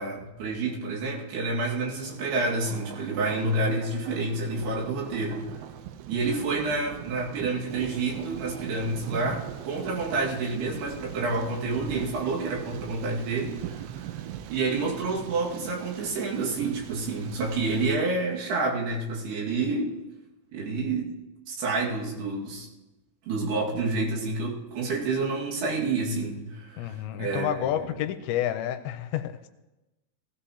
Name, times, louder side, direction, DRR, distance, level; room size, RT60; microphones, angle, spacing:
voice 1, 0.0-5.4 6.1-14.2 14.5-19.9 20.5-21.1 21.5-22.7 23.3-27.7, right 3 dB, 65° right, -2 dB, 3.9 m, -29 dB
Thunder, 2.0-18.0, right 11 dB, 85° right, 3.0 m, -41 dB
voice 2, 26.7-29.5, left 11 dB, 90° left, 8 dB, 2.9 m, -30 dB
19.5 x 15.0 x 2.9 m, 1.0 s
omnidirectional pair, 5.1 m